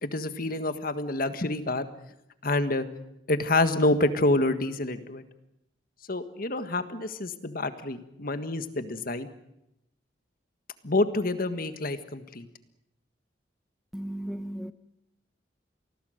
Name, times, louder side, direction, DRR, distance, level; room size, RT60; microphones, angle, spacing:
voice 1, 0.0-1.9 2.4-2.9 3.3-5.2 6.1-9.3 10.8-12.5, left 2 dB, 50° left, 10 dB, 1.6 m, -27 dB
voice 2, 13.9-14.7, right 1 dB, ahead, 10 dB, 0.8 m, -35 dB
27.5 x 20.0 x 6.5 m, 0.83 s
head